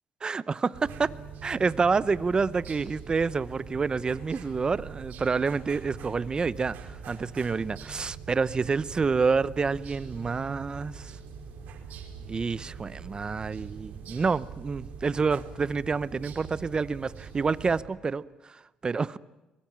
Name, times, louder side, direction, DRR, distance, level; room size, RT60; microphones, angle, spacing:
voice 1, 0.2-1.1 1.4-11.1 12.3-19.2, right 4 dB, 30° right, 17 dB, 0.8 m, -28 dB
sound 1, 0.7-17.8, right 6 dB, 80° right, 4.7 m, -43 dB
23.0 x 21.5 x 8.9 m, 1.0 s
cardioid pair, 95°, 3 cm